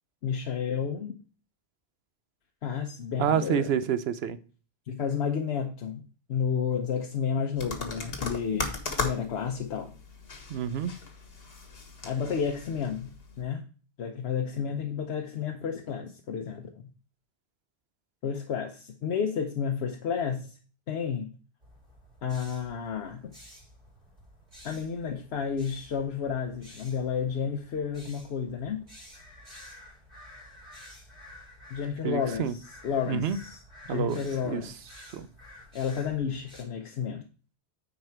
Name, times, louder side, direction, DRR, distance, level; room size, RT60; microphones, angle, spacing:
voice 1, 0.2-1.1 2.6-3.7 4.9-6.0 6.3-9.9 12.0-13.7 14.0-16.8 18.2-20.6 20.9-21.3 22.2-23.3 24.6-28.8 31.7-34.8 35.7-37.3, left 7 dB, 85° left, 1.0 m, -31 dB
voice 2, 3.2-4.4 10.5-10.9 32.0-32.5 33.1-33.4 33.9-34.2 34.4-34.7 35.1-35.3, right 8 dB, 75° right, 0.9 m, -28 dB
sound 1, 7.6-13.4, left 4 dB, 70° left, 1.4 m, -38 dB
sound 2, 21.6-36.6, left 1 dB, 60° right, 3.4 m, -51 dB
9.4 x 4.2 x 4.4 m
omnidirectional pair, 1.1 m